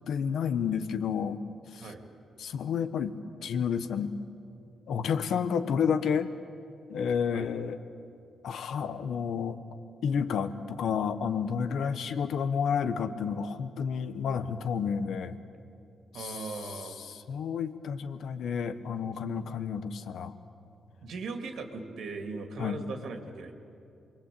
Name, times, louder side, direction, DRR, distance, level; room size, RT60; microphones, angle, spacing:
voice 1, 0.1-1.4 1.7-1.9 2.4-3.2 3.4-4.2 4.9-6.3 6.9-7.8 8.4-9.6 10.0-15.4 16.1-20.3 22.6-22.8, left 7 dB, 75° left, 11 dB, 1.3 m, -30 dB
voice 2, 16.1-17.0 19.0-19.1 21.0-23.5, right 4 dB, 70° right, 5 dB, 2.5 m, -39 dB
28.0 x 22.0 x 8.6 m, 2.7 s
wide cardioid pair, 140°, 0 cm